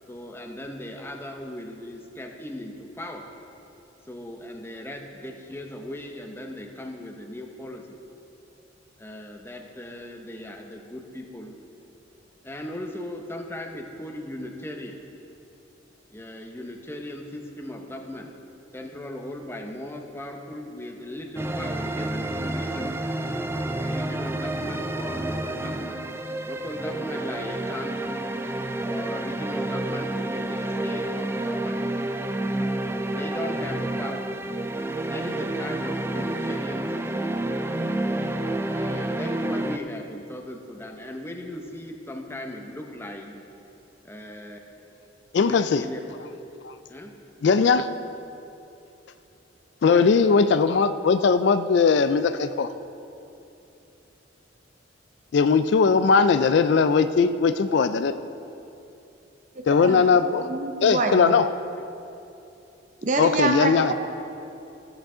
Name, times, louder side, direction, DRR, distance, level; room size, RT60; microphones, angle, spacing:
voice 1, 0.1-3.3 4.1-8.0 9.0-11.5 12.4-15.0 16.1-18.3 18.7-22.9 23.6-26.0 26.4-28.1 28.8-31.8 33.1-34.3 35.1-37.4 38.7-43.4 44.0-44.9 45.3-46.0 46.9-47.1 49.9-50.1, left 1 dB, 15° left, 3 dB, 0.7 m, -37 dB
sound 1, 21.4-39.8, right 1 dB, 15° right, 0.3 m, -29 dB
voice 2, 45.3-45.8 46.6-46.7 47.4-47.9 49.8-52.7 55.3-58.1 59.7-60.5 60.8-61.5 63.2-63.9, left 5 dB, 65° left, 12 dB, 0.3 m, -19 dB
voice 3, 59.5-60.0 60.5-61.4 63.0-63.9, right 3 dB, 40° right, 4 dB, 0.7 m, -26 dB
14.0 x 8.0 x 3.8 m, 2.8 s
head